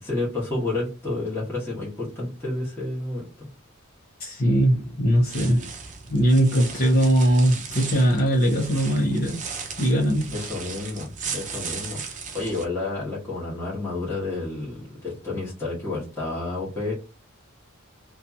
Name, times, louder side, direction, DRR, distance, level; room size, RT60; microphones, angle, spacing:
voice 1, 0.0-3.5 10.3-16.9, left 2 dB, 10° left, 1.2 m, -30 dB
voice 2, 4.2-5.7 6.1-9.5 9.8-10.4, right 1 dB, 45° left, 0.8 m, -20 dB
sound 1, 5.2-12.6, right 5 dB, 35° right, 0.6 m, -36 dB
2.7 x 2.3 x 2.6 m
head